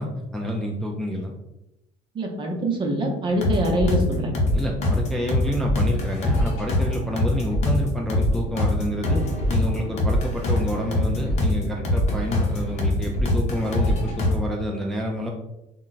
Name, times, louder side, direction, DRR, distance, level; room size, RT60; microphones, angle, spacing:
voice 1, 0.0-1.3 4.5-15.3, left 1 dB, 5° left, -1 dB, 0.3 m, -28 dB
voice 2, 2.1-4.3, right 1 dB, 35° right, 2 dB, 0.6 m, -24 dB
sound 1, 3.3-14.4, left 1 dB, 55° left, 0.8 m, -24 dB
2.2 x 2.1 x 3.8 m, 0.88 s
cardioid pair, 110°, 14 cm